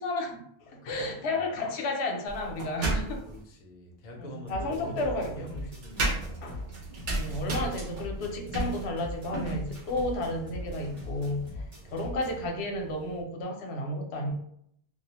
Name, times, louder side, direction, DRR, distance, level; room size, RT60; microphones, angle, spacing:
voice 1, 0.0-3.2 4.2-5.6 6.4-6.6 7.1-11.5 11.9-14.4, left 1 dB, 80° left, 0.8 m, -32 dB
sound 1, 2.3-3.4 4.6-13.2, right 2 dB, 55° right, 0.7 m, -36 dB
voice 2, 2.8-6.4 11.5-12.0, equal, 55° left, 0.5 m, -44 dB
sound 2, 4.5-12.5, left 1 dB, 40° right, 1.1 m, -41 dB
2.3 x 2.0 x 2.8 m
omnidirectional pair, 1.1 m